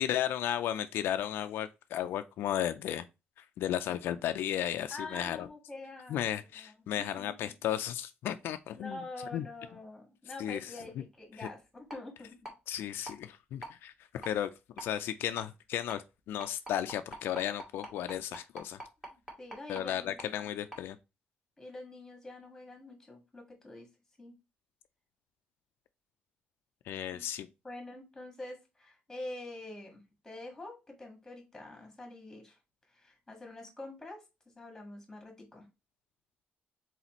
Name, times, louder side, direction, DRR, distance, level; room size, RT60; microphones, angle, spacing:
voice 1, 0.0-3.1 3.4-5.5 6.1-9.0 9.3-9.4 10.4-10.6 11.4-11.5 12.7-14.5 14.8-18.8 19.7-21.0 26.9-27.5, left 11 dB, 85° left, 0.4 m, -34 dB
voice 2, 4.9-7.6 8.7-12.5 19.1-20.3 21.6-23.9 24.2-24.3 27.0-27.2 27.6-32.6 32.9-35.7, left 2 dB, 10° left, 1.7 m, -46 dB
sound 1, 11.9-12.0 12.4-12.5 13.1-13.2 13.6-13.7 14.2-14.3 14.8-14.9 15.4-15.5 15.9-16.0 16.4-19.8 20.2-20.3 20.7-20.8, right 1 dB, 10° right, 1.6 m, -43 dB
4.1 x 4.0 x 2.9 m
cardioid pair, 160°, 4 cm